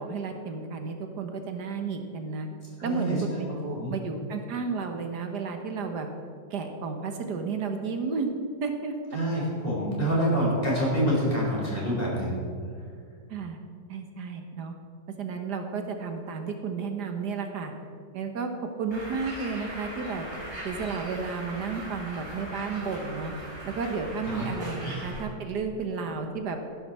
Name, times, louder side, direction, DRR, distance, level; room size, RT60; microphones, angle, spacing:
voice 1, 0.0-2.5 2.8-6.1 6.5-8.3 8.6-8.9 10.2-10.8 13.3-13.6 13.9-14.7 15.2-17.7 18.1-18.5 18.8-20.3 20.6-23.3 23.6-26.6, right 5 dB, 75° right, 5 dB, 1.7 m, -32 dB
voice 2, 2.8-3.2 3.7-3.9 9.1-12.4 24.3-24.4, equal, 30° left, -4 dB, 4.5 m, -26 dB
Bird, 18.9-25.2, right 1 dB, 35° right, 4.3 m, -40 dB
14.5 x 12.5 x 4.4 m, 2.2 s
omnidirectional pair, 1.8 m